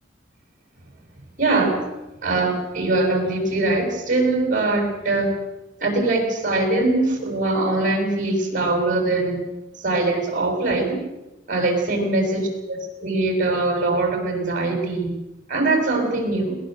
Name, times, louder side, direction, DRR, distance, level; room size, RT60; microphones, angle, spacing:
voice 1, 1.4-1.8 2.2-5.4 5.8-9.4 9.8-11.0 11.5-15.2 15.5-16.6, right 2 dB, 45° right, 4 dB, 7.2 m, -22 dB
21.0 x 19.0 x 8.0 m, 0.97 s
head